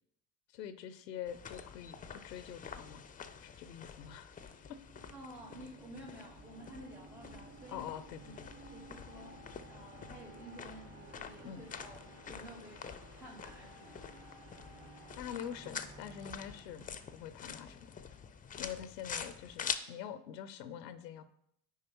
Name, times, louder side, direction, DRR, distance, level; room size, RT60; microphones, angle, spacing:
voice 1, 0.5-3.0 3.4-4.8 7.7-8.5 11.4-11.6 15.2-16.9 17.1-17.9 18.6-21.2, left 9 dB, 80° left, 13 dB, 0.6 m, -45 dB
sound 1, 1.3-19.8, left 7 dB, 20° left, 0.4 m, -47 dB
sound 2, 4.4-17.5, right 2 dB, 50° right, 2.6 m, -55 dB
voice 2, 5.1-7.9 8.2-8.3 8.7-12.8 13.2-14.1, equal, 85° right, -7 dB, 2.6 m, -52 dB
9.2 x 4.8 x 2.9 m, 0.74 s
figure-of-eight pair, 55°, 49 cm